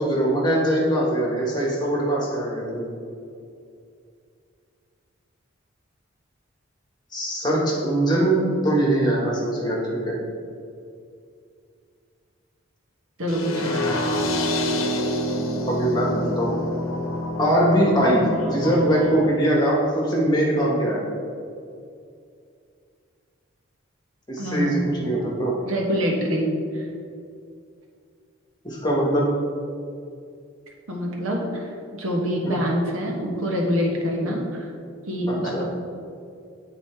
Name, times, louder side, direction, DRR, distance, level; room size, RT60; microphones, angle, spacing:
voice 1, 0.0-2.9 7.1-10.2 15.6-16.6 17.4-21.0 24.3-25.5 28.6-29.3 32.4-32.6 35.5-35.6, right 1 dB, 20° left, -3 dB, 1.3 m, -22 dB
voice 2, 13.2-13.8 24.4-24.9 25.6-26.8 30.9-34.7 35.1-35.7, equal, 85° right, 0 dB, 1.2 m, -25 dB
sound 1, 13.3-19.3, left 1 dB, 85° left, 0.8 m, -27 dB
8.7 x 4.1 x 4.4 m, 2.4 s
head